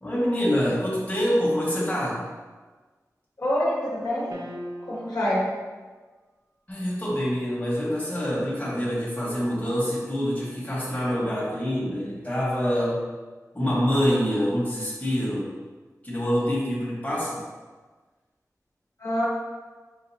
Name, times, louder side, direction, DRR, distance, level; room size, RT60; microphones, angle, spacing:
voice 1, 0.0-2.2 6.7-13.0 13.5-15.5 16.0-17.4, equal, 25° left, -7 dB, 1.2 m, -26 dB
voice 2, 3.4-4.3 4.9-5.5 19.0-19.2, equal, 70° left, -7 dB, 1.3 m, -26 dB
sound 1, 4.3-5.4, equal, 85° right, 0.5 m, -39 dB
5.8 x 2.5 x 2.7 m, 1.3 s
wide cardioid pair, 65°, 6 cm